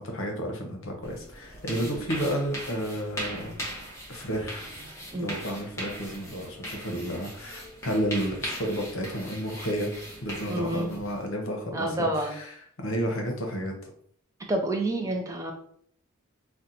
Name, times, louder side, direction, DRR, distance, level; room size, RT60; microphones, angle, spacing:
voice 1, 0.0-3.6 4.1-4.7 5.1-9.9 10.2-12.5 12.8-13.7, equal, 65° left, 2 dB, 0.8 m, -31 dB
sound 1, 1.0-11.2, equal, 15° left, 0.7 m, -39 dB
voice 2, 10.5-10.9 11.7-12.4 14.5-15.5, right 1 dB, 15° right, 2 dB, 0.4 m, -28 dB
2.7 x 2.1 x 3.9 m, 0.63 s
head